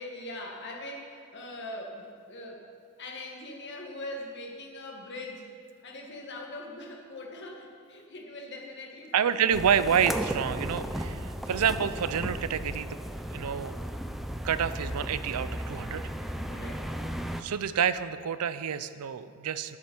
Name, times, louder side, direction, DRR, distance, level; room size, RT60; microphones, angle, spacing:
voice 1, 0.0-2.6 3.0-5.5 5.8-9.5 16.5-16.9, left 1 dB, 50° left, 0 dB, 1.7 m, -41 dB
voice 2, 9.1-12.9 13.3-13.7 14.4-16.0 17.4-19.8, right 7 dB, 80° right, 14 dB, 0.5 m, -28 dB
sound 1, 9.5-17.4, equal, ahead, 0.4 m, -35 dB
10.5 x 7.4 x 6.1 m, 2.3 s
head